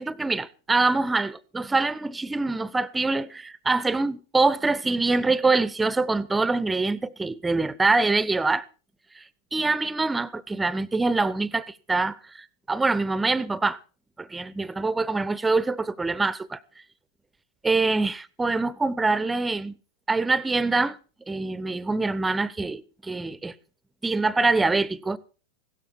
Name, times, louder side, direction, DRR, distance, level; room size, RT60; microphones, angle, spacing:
voice 1, 0.0-8.7 9.2-9.3 9.5-13.8 14.2-16.6 17.6-19.7 20.1-21.0 21.3-23.5 24.0-25.2, right 3 dB, 10° right, 0.8 m, -24 dB
17.0 x 13.0 x 4.6 m
figure-of-eight pair, 90°, 0 cm